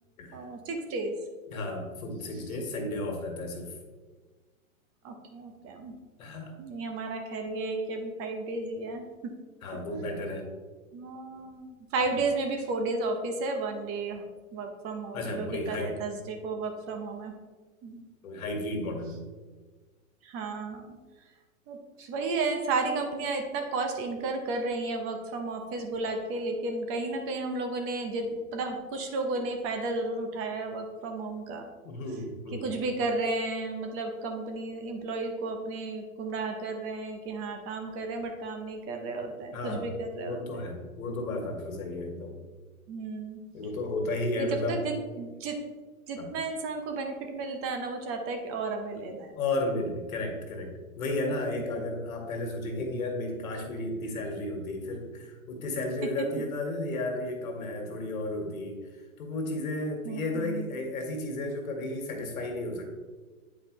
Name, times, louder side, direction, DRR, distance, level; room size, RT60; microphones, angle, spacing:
voice 1, 0.3-1.1 5.0-6.0 6.6-9.0 10.9-14.2 14.5-17.3 17.8-18.0 20.2-21.0 21.7-31.6 32.6-40.4 42.9-43.4 44.3-45.6 46.1-49.3 60.0-60.7, right 3 dB, 30° right, 4 dB, 0.9 m, -33 dB
voice 2, 1.5-3.7 6.2-6.6 9.6-10.5 15.1-16.0 18.2-19.2 31.8-32.6 39.5-39.9 40.2-42.4 43.5-44.8 46.2-46.3 49.3-58.8 59.2-62.9, left 2 dB, 75° left, 2 dB, 1.9 m, -33 dB
8.7 x 4.8 x 3.2 m, 1.3 s
hypercardioid pair, 125°, 42 cm